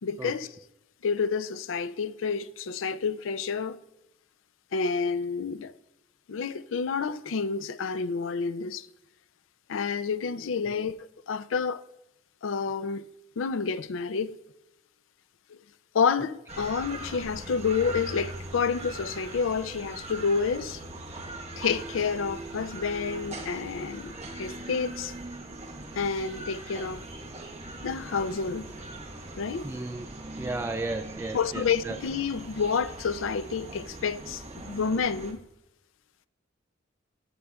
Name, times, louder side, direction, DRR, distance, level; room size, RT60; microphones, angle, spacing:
voice 1, 0.0-0.6 1.0-3.8 4.7-5.7 6.3-8.9 9.7-11.0 11.3-11.8 12.4-13.0 13.4-14.3 15.5-15.6 15.9-20.8 21.6-25.1 25.9-27.0 27.8-28.7 29.4-29.7 31.3-35.4, left 5 dB, 85° left, 0.4 m, -29 dB
sound 1, 16.5-35.3, right 2 dB, 35° right, 1.2 m, -41 dB
voice 2, 29.6-32.0, right 2 dB, 15° right, 0.4 m, -34 dB
16.5 x 6.2 x 2.3 m
head